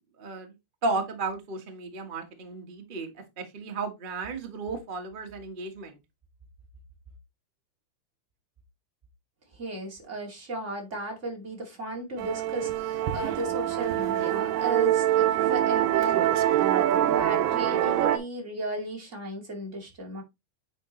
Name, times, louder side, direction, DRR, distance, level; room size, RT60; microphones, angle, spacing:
voice 1, 0.2-0.5 0.8-6.0, right 3 dB, 55° right, 0.5 m, -34 dB
voice 2, 9.5-16.3 17.1-20.2, right 1 dB, 25° right, 2.4 m, -35 dB
Musical instrument, 12.2-18.2, right 12 dB, 85° right, 2.4 m, -24 dB
9.6 x 4.5 x 3.2 m
omnidirectional pair, 3.8 m